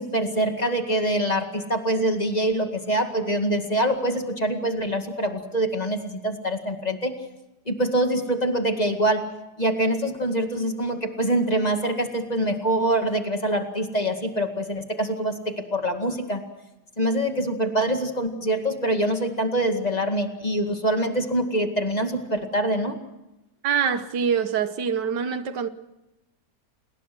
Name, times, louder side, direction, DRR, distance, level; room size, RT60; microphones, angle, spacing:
voice 1, 0.0-7.1 7.7-9.2 9.6-16.4 17.0-23.0, right 1 dB, 25° left, 2.2 m, -25 dB
voice 2, 23.6-25.7, right 7 dB, 75° right, 1.8 m, -25 dB
29.0 x 20.5 x 6.2 m
omnidirectional pair, 1.8 m